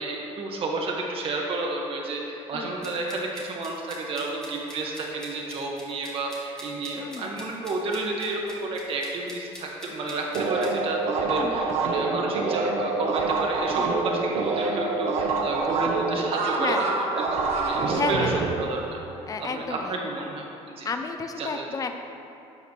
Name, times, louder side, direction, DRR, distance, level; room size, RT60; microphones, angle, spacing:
voice 1, 0.0-19.0 19.4-20.5 20.8-20.9 21.4-21.7, right 2 dB, 50° right, -1 dB, 1.7 m, -31 dB
voice 2, 2.5-2.9 7.0-7.5 11.3-11.7 13.8-14.0 16.5-17.0 17.9-18.3 19.3-20.0 20.8-22.0, left 4 dB, 30° left, 6 dB, 0.7 m, -32 dB
sound 1, 2.8-10.7, equal, 5° left, 2.0 m, -45 dB
sound 2, 10.3-19.5, right 3 dB, 70° right, 1.2 m, -26 dB
12.0 x 8.3 x 3.3 m, 2.8 s
cardioid pair, 125°, 12 cm